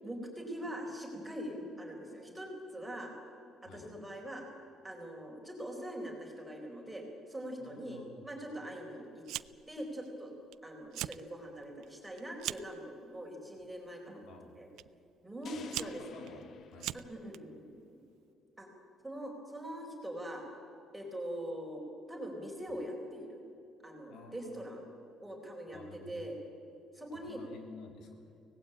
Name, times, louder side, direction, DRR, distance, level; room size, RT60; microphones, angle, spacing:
voice 1, 0.0-3.1 3.7-4.4 4.8-9.2 9.7-10.3 10.6-14.7 15.2-16.0 16.9-18.0 18.6-18.7 19.0-20.4 20.9-23.4 23.8-24.8 25.2-26.3 26.9-27.4, equal, 5° right, 0 dB, 4.3 m, -43 dB
voice 2, 7.6-8.3 14.2-14.5 15.5-16.5 16.7-17.0 22.7-22.8 24.1-24.6 25.6-26.2 27.1-28.3, left 3 dB, 60° left, 3 dB, 3.7 m, -52 dB
Fire, 9.2-9.7 10.1-10.5 10.8-11.2 11.6-12.8 13.6-13.9 14.8-14.9 15.4-17.4, right 14 dB, 65° right, 0.5 m, -40 dB
sound 1, 15.5-17.7, left 7 dB, 40° left, 0.9 m, -51 dB
24.5 x 18.5 x 8.9 m, 2.7 s
cardioid pair, 170°, 0 cm